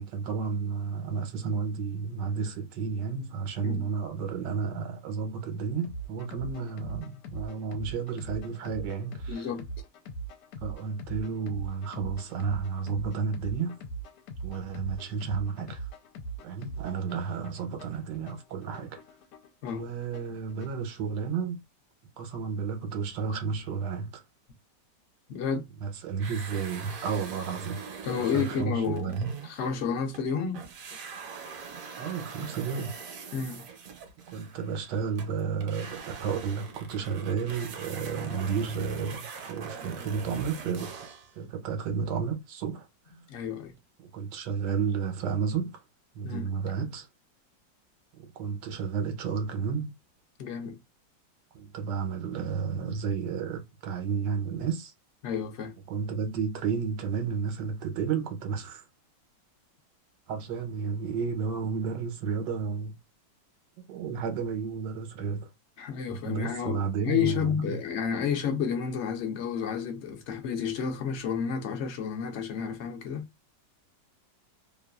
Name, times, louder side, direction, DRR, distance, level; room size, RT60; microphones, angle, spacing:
voice 1, 0.0-9.5 10.6-13.8 14.4-15.9 16.4-19.0 19.7-21.6 22.2-24.2 25.8-27.8 28.2-29.3 32.0-33.0 34.3-41.0 41.3-42.9 44.0-45.8 46.1-47.1 48.1-49.9 51.5-54.9 55.9-58.8 60.3-63.0 63.8-65.5 66.1-67.8, right 6 dB, 75° right, 1.3 m, -32 dB
sound 1, 5.8-20.8, right 3 dB, 75° left, 1.2 m, -41 dB
voice 2, 9.3-9.7 19.6-19.9 25.3-25.6 28.0-29.2 29.4-30.6 33.3-33.6 43.3-43.8 46.2-46.5 50.4-50.8 55.2-55.7 65.8-73.3, left 7 dB, 60° left, 0.7 m, -31 dB
sound 2, 26.2-30.3 30.5-41.3, right 6 dB, 60° right, 1.0 m, -43 dB
3.0 x 2.3 x 2.2 m
omnidirectional pair, 1.9 m